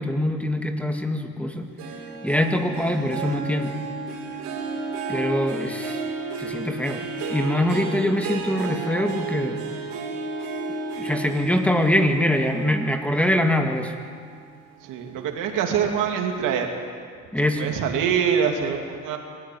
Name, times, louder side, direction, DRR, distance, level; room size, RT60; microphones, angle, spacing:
voice 1, 0.0-1.7 2.2-3.8 5.1-6.0 6.4-9.6 11.0-13.9 17.3-17.8, left 1 dB, 5° left, 4 dB, 2.0 m, -23 dB
Harp, 1.8-14.5 14.9-15.3 15.8-15.9, right 4 dB, 90° right, 4.5 m, -33 dB
voice 2, 14.8-16.7 17.6-19.2, right 7 dB, 75° right, 3 dB, 3.0 m, -24 dB
24.5 x 14.0 x 9.6 m, 2.1 s
cardioid pair, 105°, 32 cm